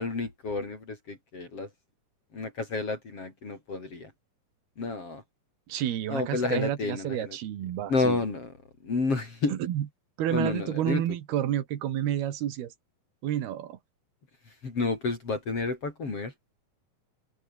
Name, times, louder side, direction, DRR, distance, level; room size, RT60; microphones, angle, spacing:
voice 1, 0.0-1.7 2.3-4.1 4.8-5.2 6.1-7.4 7.9-8.5 8.8-9.5 10.3-11.0 14.6-16.3, left 3 dB, 40° left, 5.3 m, -30 dB
voice 2, 5.7-8.2 9.5-9.9 10.2-12.7 13.2-13.8, right 11 dB, 85° right, 3.8 m, -30 dB
open air
omnidirectional pair, 4.4 m